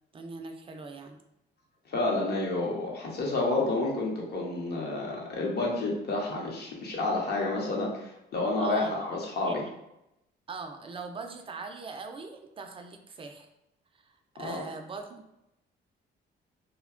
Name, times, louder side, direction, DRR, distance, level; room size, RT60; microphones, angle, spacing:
voice 1, 0.1-1.2 8.6-9.0 9.4-9.8 10.5-13.5 13.9-15.3, right 4 dB, 25° right, 5 dB, 0.3 m, -41 dB
voice 2, 1.9-9.6 14.4-14.6, left 2 dB, 55° left, -2 dB, 0.8 m, -30 dB
2.7 x 2.1 x 2.4 m, 0.86 s
cardioid pair, 90°, 20 cm